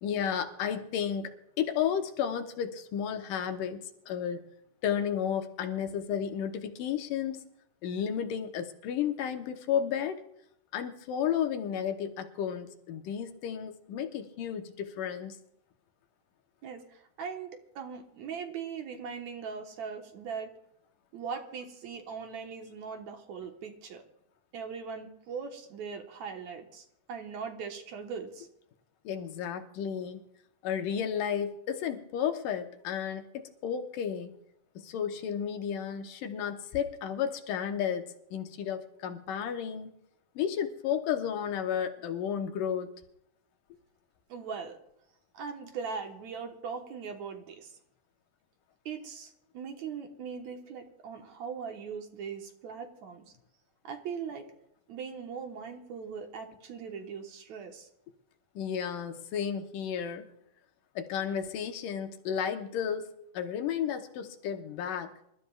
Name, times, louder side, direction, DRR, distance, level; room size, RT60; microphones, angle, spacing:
voice 1, 0.0-3.8 4.1-4.5 4.8-7.5 7.8-10.2 10.7-15.4 29.0-30.2 30.6-34.4 34.8-39.9 40.4-42.9 58.6-60.3 61.0-63.1 63.3-65.3, left 8 dB, 80° left, 6 dB, 2.6 m, -33 dB
voice 2, 16.6-20.5 21.1-24.0 24.5-28.5 44.3-44.8 45.3-47.8 48.9-53.2 53.8-54.5 54.9-57.9, right 6 dB, 65° right, 4 dB, 2.5 m, -40 dB
27.0 x 13.5 x 2.4 m, 0.76 s
omnidirectional pair, 3.8 m